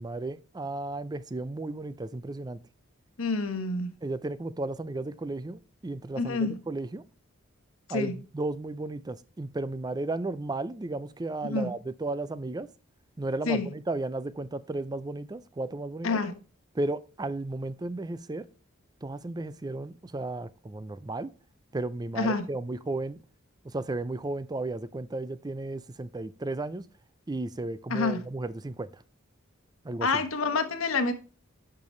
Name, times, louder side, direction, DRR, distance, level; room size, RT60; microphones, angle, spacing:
voice 1, 0.0-2.6 4.0-7.0 7.9-12.7 13.2-16.1 16.7-18.5 19.0-21.3 21.7-23.2 23.6-26.9 27.3-28.9 29.8-30.1, right 2 dB, 20° right, 0.4 m, -34 dB
voice 2, 3.2-4.0 6.2-6.6 7.9-8.1 11.4-11.7 13.5-13.7 16.0-16.3 22.2-22.4 27.9-28.2 30.0-31.1, left 3 dB, 85° left, 1.3 m, -27 dB
10.5 x 6.8 x 3.1 m
head